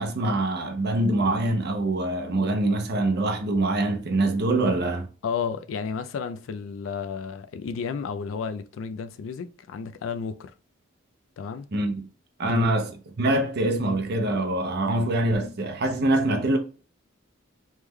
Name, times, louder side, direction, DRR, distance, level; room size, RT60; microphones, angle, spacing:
voice 1, 0.0-5.1 11.7-12.1 12.4-12.9 13.2-16.6, right 2 dB, 55° right, 0.6 m, -24 dB
voice 2, 5.2-10.5 11.4-11.7 12.4-12.7, left 6 dB, 70° left, 0.3 m, -32 dB
3.1 x 2.2 x 3.5 m
head